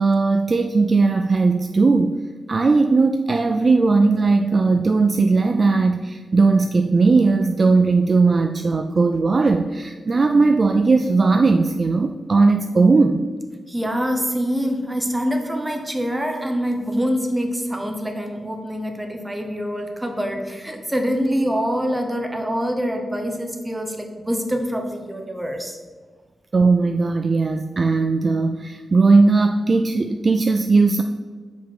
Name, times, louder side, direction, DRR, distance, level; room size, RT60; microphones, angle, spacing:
voice 1, 0.0-2.2 2.5-13.3 26.5-31.0, right 3 dB, 35° right, 6 dB, 0.3 m, -18 dB
voice 2, 13.7-25.8, equal, 10° right, 3 dB, 0.9 m, -25 dB
6.0 x 5.2 x 4.7 m, 1.5 s
wide cardioid pair, 120°, 0 cm